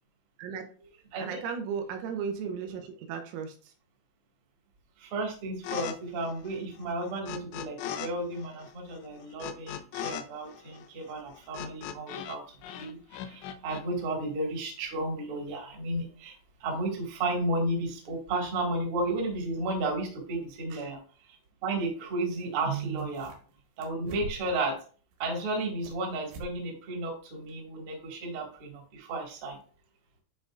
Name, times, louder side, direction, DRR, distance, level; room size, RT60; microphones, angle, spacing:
voice 1, 1.2-3.7 20.7-20.9, right 6 dB, 90° right, 4 dB, 3.4 m, -35 dB
voice 2, 5.0-12.4 12.7-16.3 16.6-21.0 21.6-23.3 23.8-24.8 25.2-29.6, right 2 dB, 50° right, 0 dB, 1.6 m, -33 dB
sound 1, 5.6-6.0 6.2-8.1 8.4-12.4 12.6-13.8, left 10 dB, 85° left, 2.9 m, -39 dB
sound 2, 22.4-22.5 22.7-23.5 23.8-24.6 25.1-26.0 26.3-26.6 26.9-27.0 27.5-27.6, right 3 dB, 70° right, 3.2 m, -44 dB
10.5 x 4.0 x 2.4 m, 0.40 s
omnidirectional pair, 5.4 m